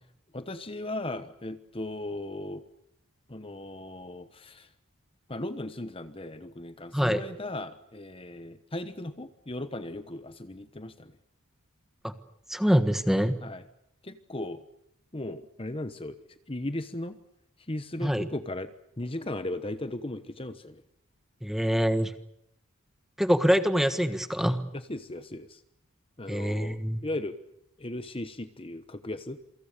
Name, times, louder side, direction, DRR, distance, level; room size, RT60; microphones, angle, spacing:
voice 1, 0.3-2.6 3.3-4.7 5.3-11.1 13.4-13.7 14.0-14.6 15.1-16.2 16.5-17.2 17.7-18.7 19.0-20.8 24.7-25.6 26.2-27.3 27.8-29.4, left 1 dB, 25° left, 11 dB, 1.1 m, -37 dB
voice 2, 12.5-13.3 18.0-18.2 21.4-22.1 23.2-24.6 26.3-27.0, equal, ahead, 10 dB, 1.4 m, -25 dB
28.0 x 24.5 x 6.8 m, 0.76 s
head